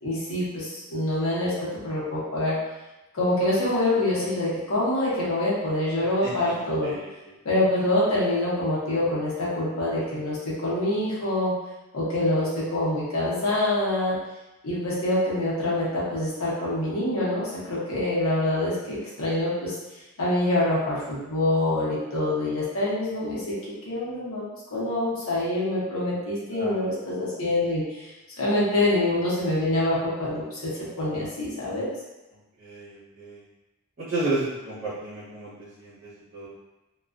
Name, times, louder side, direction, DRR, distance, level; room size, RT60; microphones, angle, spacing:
voice 1, 0.0-2.6 3.1-6.9 7.4-11.5 11.9-14.2 14.6-19.7 20.2-23.5 23.8-24.4 24.7-28.1 28.4-30.7 31.0-31.9, left 1 dB, 70° left, -7 dB, 0.8 m, -25 dB
voice 2, 6.6-7.1 18.3-18.5 26.5-26.9 32.6-33.4 34.0-36.5, right 2 dB, 45° right, -11 dB, 0.9 m, -33 dB
2.3 x 2.3 x 2.4 m, 1.0 s
head